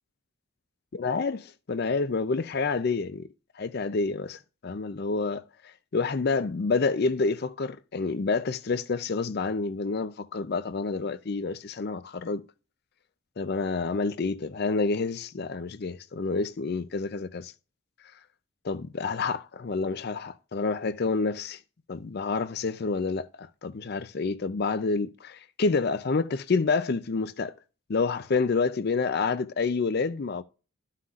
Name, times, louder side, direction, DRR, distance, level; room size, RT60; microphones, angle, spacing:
voice 1, 1.0-3.3 3.6-5.4 5.9-12.4 13.4-17.5 18.6-21.6 21.9-27.5 27.9-30.4, left 4 dB, 45° left, 0.4 m, -28 dB
12.5 x 5.7 x 2.4 m
head